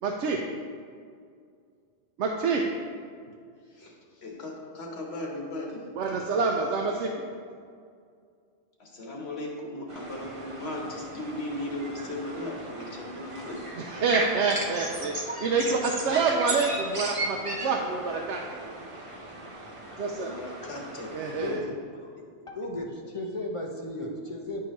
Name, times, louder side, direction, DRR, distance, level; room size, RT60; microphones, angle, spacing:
voice 1, 0.0-0.4 2.2-2.6 6.0-7.1 13.8-18.8 20.0-20.3 21.1-21.6, right 4 dB, 80° right, 1 dB, 0.9 m, -27 dB
voice 2, 4.2-5.8 8.8-13.7 20.2-21.2, left 1 dB, 65° left, -1 dB, 1.4 m, -37 dB
sound 1, 9.9-21.6, right 2 dB, 30° right, 0.8 m, -37 dB
voice 3, 21.4-22.2 22.5-24.6, left 1 dB, 35° left, 0 dB, 0.7 m, -35 dB
10.0 x 4.7 x 3.0 m, 2.2 s
omnidirectional pair, 1.2 m